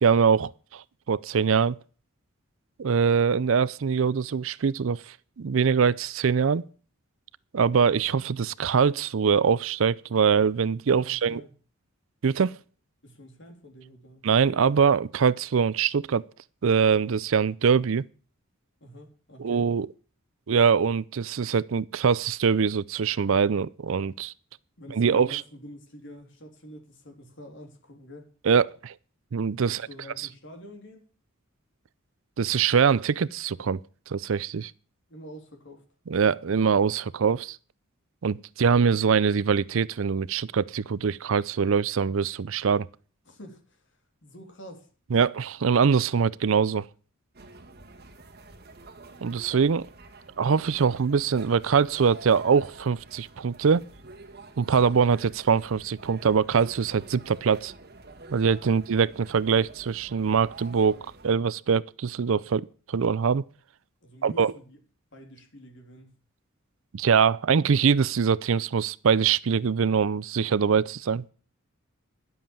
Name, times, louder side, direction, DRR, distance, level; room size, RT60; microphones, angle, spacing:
voice 1, 0.0-1.8 2.8-6.6 7.5-11.4 12.2-12.6 14.2-16.2 16.6-18.0 19.4-19.9 20.5-24.3 24.9-25.4 28.5-28.9 29.3-29.9 32.4-33.8 34.1-34.7 36.1-37.6 38.2-42.9 45.1-46.9 49.2-49.9 50.4-53.8 54.6-57.7 58.3-63.4 64.2-64.5 66.9-71.2, right 6 dB, 65° right, 0.5 m, -23 dB
voice 2, 11.0-11.5 13.0-14.3 18.8-19.7 24.8-28.3 29.6-31.0 35.1-35.8 43.2-44.9 58.6-58.8 64.0-64.8 65.1-66.2, equal, 55° left, 3.4 m, -47 dB
sound 1, 47.3-61.3, right 3 dB, 45° right, 1.8 m, -48 dB
11.0 x 7.8 x 7.1 m
head